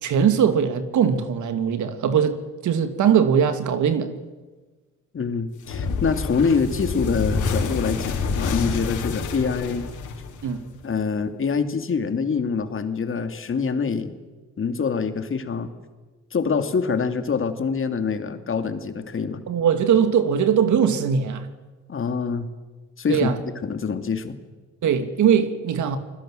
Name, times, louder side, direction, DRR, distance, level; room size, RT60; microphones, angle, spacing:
voice 1, 0.0-2.4 2.6-4.1 10.4-10.6 19.5-21.5 23.1-23.4 24.8-26.0, right 7 dB, 75° right, 2.8 m, -20 dB
voice 2, 5.1-9.9 10.8-14.1 14.6-15.7 16.3-19.4 21.9-22.5 23.0-24.4, left 5 dB, 45° left, 2.8 m, -25 dB
sound 1, 5.7-10.8, left 4 dB, 80° left, 4.4 m, -27 dB
29.0 x 20.5 x 7.9 m
cardioid pair, 90°, 30 cm